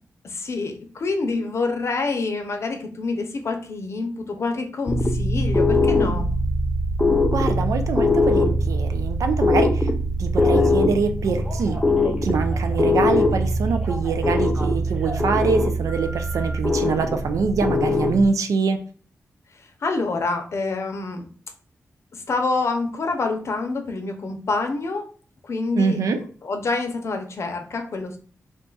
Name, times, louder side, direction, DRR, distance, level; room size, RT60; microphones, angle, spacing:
voice 1, 0.2-6.3 19.8-21.3 22.3-25.0 25.4-28.2, left 3 dB, 60° left, 5 dB, 0.6 m, -27 dB
sound 1, 4.9-18.3, left 1 dB, 20° left, 0.4 m, -22 dB
voice 2, 7.3-9.9 10.2-11.8 12.2-18.8 25.8-26.2, right 5 dB, 85° right, 7 dB, 0.4 m, -24 dB
Telephone, 10.4-10.7 11.2-12.9 13.2-15.3 15.9-16.6, equal, 20° right, 0.7 m, -38 dB
2.5 x 2.3 x 3.9 m, 0.42 s
wide cardioid pair, 90°, 5 cm